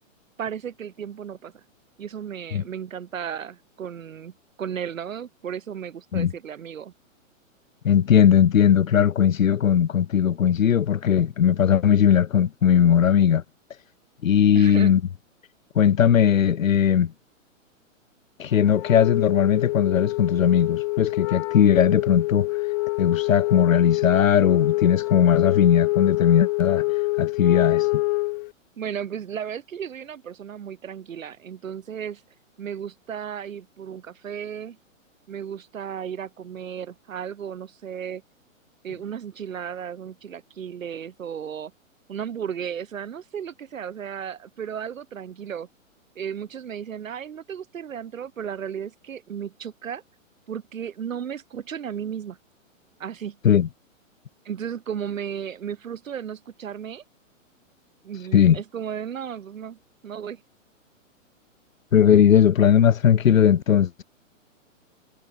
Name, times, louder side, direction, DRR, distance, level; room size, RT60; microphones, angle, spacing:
voice 1, 0.4-1.6 2.0-6.9 14.6-15.0 28.8-32.2 32.6-34.8 35.3-38.2 38.8-41.7 42.1-45.7 46.2-50.0 50.5-52.4 53.0-53.4 54.5-57.0 58.0-60.4, right 8 dB, 75° right, 7.3 m, -34 dB
voice 2, 7.8-13.4 14.2-15.0 15.7-17.1 18.4-22.5 23.0-26.8 27.2-27.9 53.4-53.7 58.3-58.6 61.9-64.0, left 8 dB, 75° left, 2.9 m, -18 dB
Wind instrument woodwind instrument, 18.7-28.5, left 23 dB, 30° left, 2.4 m, -25 dB
hypercardioid pair, 165°, 40 cm